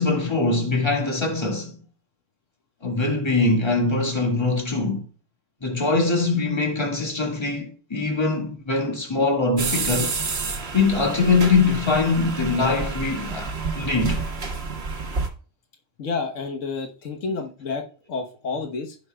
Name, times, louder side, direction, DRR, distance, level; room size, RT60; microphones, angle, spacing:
voice 1, 0.0-1.7 2.8-5.0 5.6-10.2 10.7-14.2 17.2-17.4, left 3 dB, 20° left, 1.8 m, -22 dB
sound 1, 9.6-15.3, right 4 dB, 55° right, 1.6 m, -29 dB
voice 2, 16.0-19.0, left 4 dB, 85° left, 1.5 m, -30 dB
15.0 x 5.8 x 2.2 m
omnidirectional pair, 1.3 m